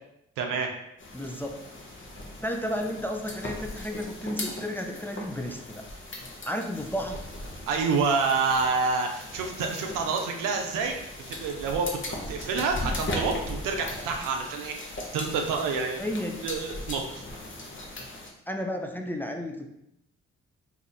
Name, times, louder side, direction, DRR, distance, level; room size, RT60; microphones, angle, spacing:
voice 1, 0.4-0.7 7.7-10.9 11.3-16.0 16.4-17.2, right 4 dB, 85° right, 3 dB, 0.6 m, -28 dB
sound 1, 1.0-18.3, left 1 dB, 40° left, 0.9 m, -38 dB
voice 2, 1.1-1.5 2.2-5.8 6.5-7.2 12.6-12.7 16.0-16.4 18.5-19.7, equal, 5° left, 3 dB, 0.5 m, -32 dB
2.8 x 2.4 x 4.0 m, 0.80 s
supercardioid pair, 45°, 31 cm